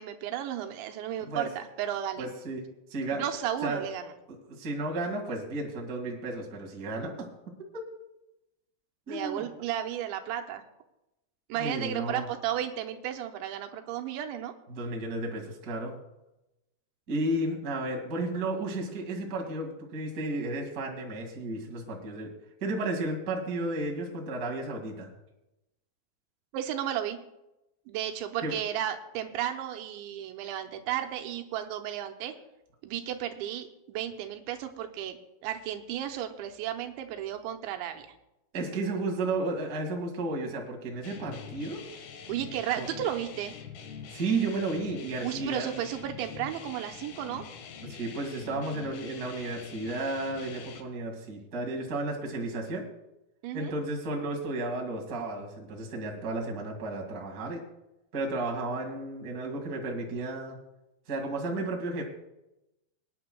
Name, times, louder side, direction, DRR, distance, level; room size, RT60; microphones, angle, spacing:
voice 1, 0.0-2.3 3.1-4.1 9.1-10.6 11.5-14.5 26.5-27.2 27.9-32.4 32.8-35.2 35.4-38.0 42.3-43.5 45.2-47.4 53.4-53.7, right 11 dB, 85° right, 6 dB, 3.1 m, -33 dB
voice 2, 2.2-2.6 2.9-3.2 3.6-3.9 4.3-7.1 7.7-7.8 9.1-9.4 11.6-12.2 14.7-15.9 17.1-22.3 22.6-25.1 28.4-28.5 38.5-41.8 42.8-42.9 44.1-45.7 47.8-52.9 53.5-57.6 58.1-60.6 61.1-62.0, right 2 dB, 45° right, 0 dB, 1.1 m, -33 dB
sound 1, 41.0-50.8, left 7 dB, 70° left, 2.8 m, -45 dB
25.0 x 9.5 x 2.3 m, 0.93 s
omnidirectional pair, 5.2 m